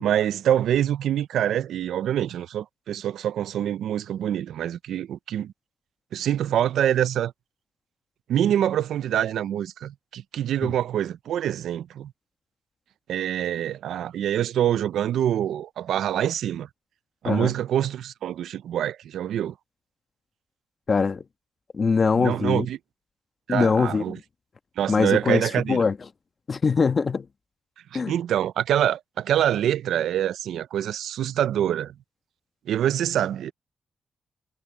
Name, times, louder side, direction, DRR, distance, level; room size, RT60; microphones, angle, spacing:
voice 1, 0.0-5.5 6.1-7.3 8.3-12.1 13.1-16.7 17.2-19.5 22.2-22.8 23.5-24.2 24.8-25.9 27.9-31.9 32.7-33.5, right 10 dB, 85° right, 0.4 m, -25 dB
voice 2, 20.9-21.2 21.7-22.7 23.5-24.2 24.9-26.0 26.5-27.3 27.9-28.1, left 5 dB, 45° left, 1.2 m, -22 dB
cardioid pair, 65°, 0 cm